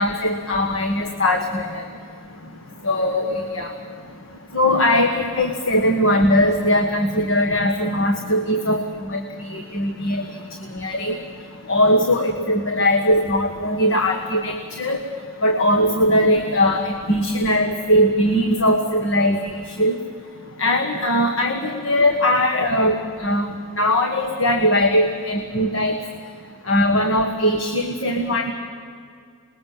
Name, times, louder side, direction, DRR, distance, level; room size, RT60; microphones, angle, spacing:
voice 1, 0.0-1.8 2.8-3.7 4.5-9.2 9.5-10.2 10.7-11.2 11.7-15.0 15.4-20.0 20.6-25.9 26.7-28.5, left 1 dB, 65° left, 4 dB, 1.7 m, -20 dB
27.5 x 21.0 x 7.6 m, 2.2 s
head